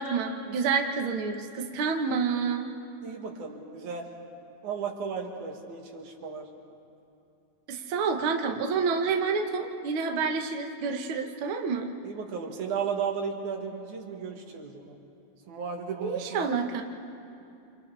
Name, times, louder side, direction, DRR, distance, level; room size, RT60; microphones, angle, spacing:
voice 1, 0.0-2.7 7.7-11.9 16.0-16.8, right 5 dB, 55° right, 3 dB, 1.7 m, -28 dB
voice 2, 3.0-4.1 4.6-6.5 12.0-14.9 15.5-16.4, right 6 dB, 90° right, 2 dB, 3.2 m, -34 dB
29.0 x 27.5 x 3.4 m, 2.7 s
omnidirectional pair, 3.3 m